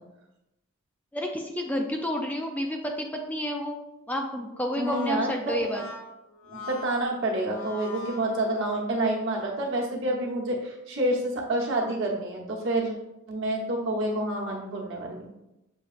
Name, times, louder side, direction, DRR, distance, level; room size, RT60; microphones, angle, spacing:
voice 1, 1.1-3.8 4.1-5.8, equal, 10° left, 2 dB, 0.4 m, -30 dB
Brass instrument, 4.5-9.0, left 4 dB, 85° left, 0.7 m, -42 dB
voice 2, 4.8-5.8 6.5-13.0 13.3-15.3, right 1 dB, 65° right, -2 dB, 1.0 m, -28 dB
6.5 x 2.8 x 2.4 m, 0.90 s
head